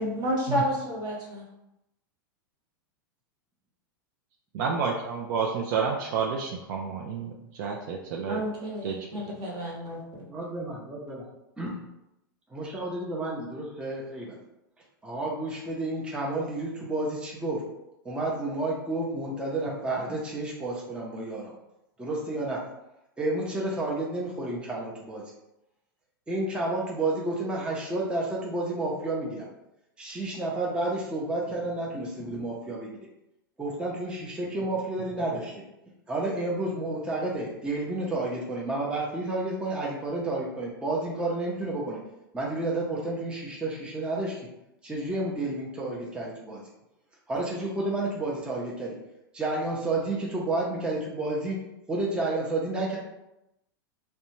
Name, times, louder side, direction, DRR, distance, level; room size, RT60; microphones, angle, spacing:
voice 1, 0.0-1.4 8.3-10.0, equal, 35° right, -3 dB, 1.0 m, -30 dB
voice 2, 4.5-8.4 8.8-9.0, right 5 dB, 60° right, 0 dB, 0.4 m, -30 dB
voice 3, 10.3-11.3 11.6-11.7 12.5-14.4 15.0-17.6 18.0-21.5 22.0-22.6 23.2-25.2 26.3-29.4 30.0-32.9 33.6-35.6 36.1-42.0 42.3-44.5 44.8-46.6 47.3-48.9 49.3-51.6 51.9-53.0, right 2 dB, 10° right, -4 dB, 0.5 m, -30 dB
2.5 x 2.1 x 2.9 m, 0.88 s
hypercardioid pair, 110°, 12 cm